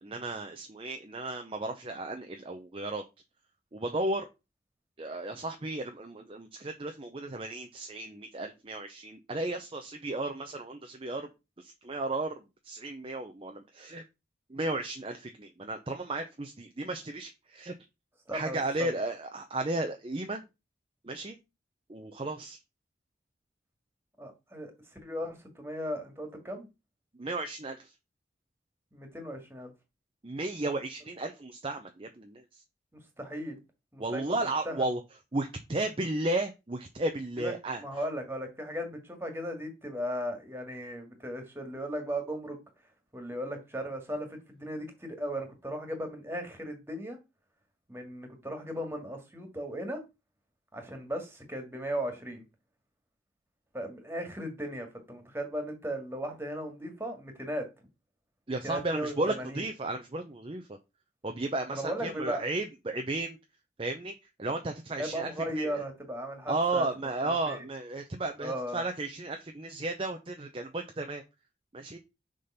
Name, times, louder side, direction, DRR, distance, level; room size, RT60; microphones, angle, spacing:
voice 1, 0.0-3.0 3.7-4.2 5.0-11.3 11.6-14.0 14.5-17.7 18.3-20.4 21.0-21.4 21.9-22.6 27.2-27.9 30.2-32.6 34.0-35.0 35.3-37.8 58.5-60.8 61.2-63.4 63.8-64.1 64.4-65.8 66.5-71.2 71.7-72.0, right 2 dB, 30° right, 0.6 m, -34 dB
voice 2, 18.3-18.9 24.2-24.7 25.0-26.7 28.9-29.7 33.2-33.6 33.9-34.2 34.7-34.8 37.4-37.5 37.8-42.6 43.1-47.2 47.9-50.0 50.7-52.4 53.7-57.7 58.6-59.6 61.7-62.4 65.0-66.9 67.2-67.6 68.4-68.8, equal, 15° right, 2.0 m, -36 dB
6.6 x 3.8 x 5.6 m
head